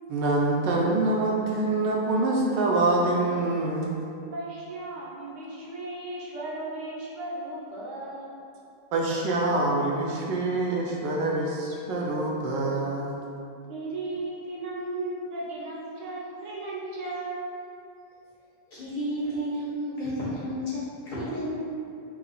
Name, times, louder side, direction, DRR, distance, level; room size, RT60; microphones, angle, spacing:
voice 1, 0.1-4.0 8.9-13.2, right 2 dB, 80° right, -2 dB, 1.3 m, -25 dB
voice 2, 4.3-8.3 13.7-17.5, right 2 dB, 55° right, -4 dB, 1.0 m, -35 dB
voice 3, 18.7-21.6, equal, 50° left, -9 dB, 1.6 m, -31 dB
4.6 x 2.8 x 4.0 m, 2.5 s
omnidirectional pair, 1.9 m